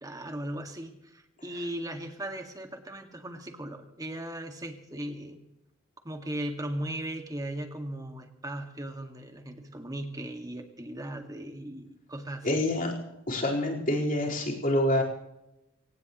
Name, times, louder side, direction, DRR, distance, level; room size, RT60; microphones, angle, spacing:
voice 1, 0.0-5.4 6.0-12.5, right 1 dB, 15° right, 5 dB, 2.0 m, -37 dB
voice 2, 12.4-12.9 13.3-15.0, left 1 dB, 40° left, -2 dB, 4.4 m, -26 dB
24.5 x 19.0 x 3.1 m, 0.90 s
head